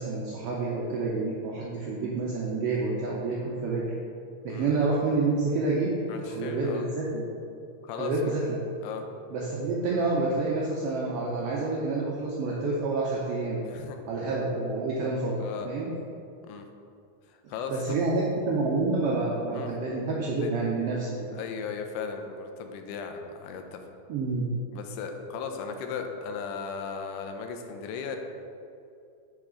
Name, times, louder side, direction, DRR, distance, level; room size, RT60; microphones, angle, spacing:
voice 1, 0.0-3.8 4.4-7.2 8.0-8.6 9.3-13.6 14.1-15.4 15.6-15.9 17.7-21.3 24.1-24.5, right 3 dB, 90° right, -4 dB, 1.3 m, -28 dB
voice 2, 6.1-6.8 7.8-8.4 8.8-9.0 13.6-14.0 15.4-15.7 16.5-16.7 17.3-18.0 19.5-19.7 20.4-20.5 21.3-23.8 24.7-28.2, left 6 dB, 90° left, 5 dB, 2.2 m, -36 dB
5.3 x 4.6 x 4.9 m, 2.5 s
omnidirectional pair, 3.6 m